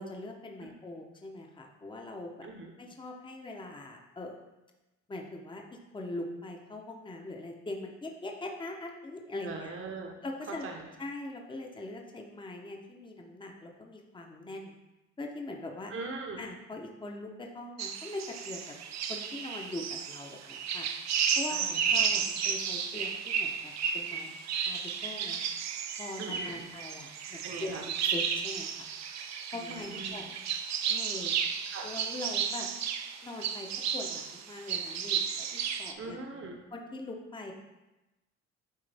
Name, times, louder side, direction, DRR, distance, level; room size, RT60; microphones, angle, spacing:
voice 1, 0.0-2.5 2.8-4.4 5.1-9.8 10.2-10.7 11.0-14.7 15.2-15.9 16.4-18.7 19.1-20.9 21.4-24.4 24.7-25.4 26.0-27.8 28.1-28.9 29.5-30.3 30.9-31.3 31.8-32.7 33.2-36.2 36.7-37.5, left 2 dB, 15° left, 2 dB, 0.8 m, -42 dB
voice 2, 9.4-10.1 10.6-10.9 15.9-16.4 21.5-21.9 22.2-22.3 26.2-26.7 27.4-27.8 29.5-30.3 31.7-31.9 36.0-36.6, right 3 dB, 45° right, 2 dB, 0.9 m, -41 dB
sound 1, 17.8-35.9, right 7 dB, 60° right, 0.6 m, -33 dB
9.1 x 3.1 x 3.4 m, 1.0 s
cardioid pair, 90°, 30 cm